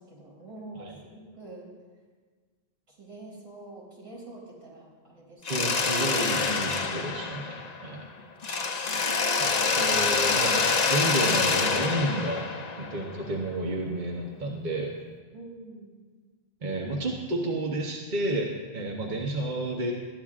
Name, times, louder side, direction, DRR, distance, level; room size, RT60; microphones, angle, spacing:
voice 1, 0.0-1.7 2.9-5.8 8.1-9.0 15.3-16.0, right 2 dB, 75° right, -5 dB, 4.1 m, -47 dB
Mechanisms, 5.4-8.0 8.4-13.3, left 4 dB, 45° left, 0.8 m, -26 dB
voice 2, 5.5-8.1 9.4-12.4 12.8-14.9 16.6-19.9, right 1 dB, 50° right, 0 dB, 1.1 m, -31 dB
20.0 x 13.5 x 2.4 m, 1.5 s
omnidirectional pair, 1.1 m